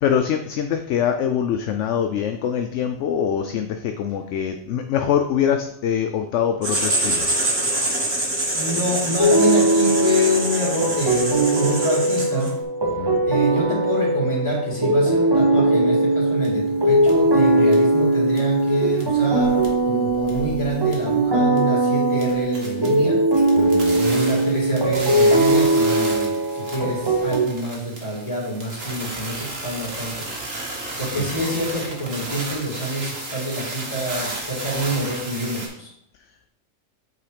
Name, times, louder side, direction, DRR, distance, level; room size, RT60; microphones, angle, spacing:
voice 1, 0.0-7.3 13.0-13.2 23.6-24.0 31.2-31.3, left 8 dB, 70° left, 6 dB, 0.9 m, -24 dB
Writing, 6.6-12.6, right 1 dB, 50° right, 1.9 m, -25 dB
voice 2, 8.5-12.5 13.2-23.2 23.9-30.3 31.0-35.9, equal, 20° left, -4 dB, 2.7 m, -26 dB
sound 1, 9.2-27.4, right 2 dB, 30° right, 0.5 m, -20 dB
sound 2, 16.4-16.5 17.1-17.2 17.7-18.0 18.3-18.6 18.9-19.8 20.1-21.2 21.6-21.7 22.0-35.7, right 2 dB, 75° right, 2.0 m, -33 dB
8.6 x 3.8 x 5.0 m, 0.73 s
omnidirectional pair, 1.4 m